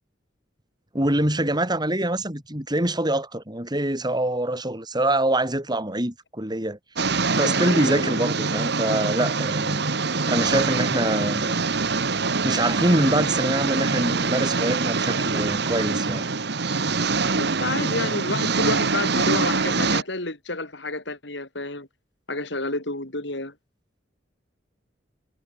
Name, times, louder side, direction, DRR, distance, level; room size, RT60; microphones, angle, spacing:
voice 1, 0.9-6.8 7.3-9.8 10.3-11.5 12.4-16.3, right 1 dB, 25° right, 7.3 m, -24 dB
sound 1, 7.0-20.0, right 4 dB, 65° right, 1.6 m, -24 dB
voice 2, 7.4-8.2 17.4-21.9 22.3-23.5, left 2 dB, 70° left, 5.4 m, -30 dB
head